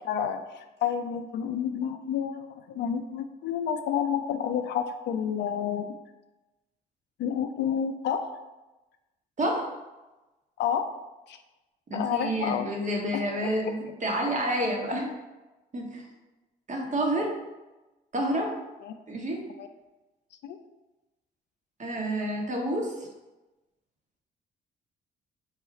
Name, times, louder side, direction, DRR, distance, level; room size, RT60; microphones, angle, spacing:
voice 1, 0.0-5.9 7.2-8.3 10.6-10.9 11.3-11.4 11.9-12.7 13.1-13.2 18.8-18.9 19.6-19.7 20.4-20.6, left 8 dB, 65° left, 7 dB, 0.4 m, -29 dB
voice 2, 9.4-9.7 11.9-15.1 15.7-16.0 16.7-17.3 18.1-18.5 19.1-19.4 21.8-22.9, right 1 dB, 40° right, 0 dB, 1.1 m, -29 dB
4.1 x 2.3 x 4.1 m, 1.1 s
supercardioid pair, 55°, 19 cm